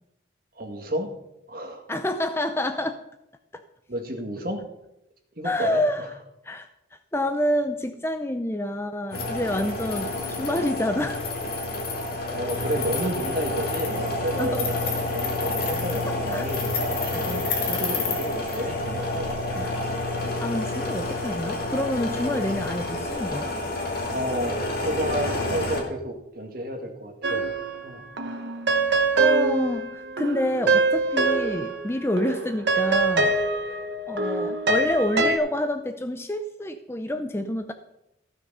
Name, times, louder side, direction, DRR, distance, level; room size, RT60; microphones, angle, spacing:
voice 1, 0.6-1.1 1.5-1.8 3.9-4.6 5.4-6.1 12.3-19.6 24.1-27.5 27.8-28.0, equal, 50° right, 3 dB, 1.9 m, -31 dB
voice 2, 1.9-3.0 3.5-3.6 5.4-6.1 6.4-6.7 7.1-11.3 14.4-14.7 16.1-16.5 17.7-17.8 19.0-19.1 19.5-19.8 20.4-23.5 29.2-33.3 34.1-37.7, left 1 dB, 15° left, 7 dB, 0.5 m, -28 dB
sound 1, 9.1-25.8, left 2 dB, 50° left, 2.1 m, -29 dB
sound 2, 27.2-27.9 28.2-31.9 32.2-35.4, right 3 dB, 65° right, 1.1 m, -24 dB
14.5 x 6.4 x 5.5 m, 0.85 s
head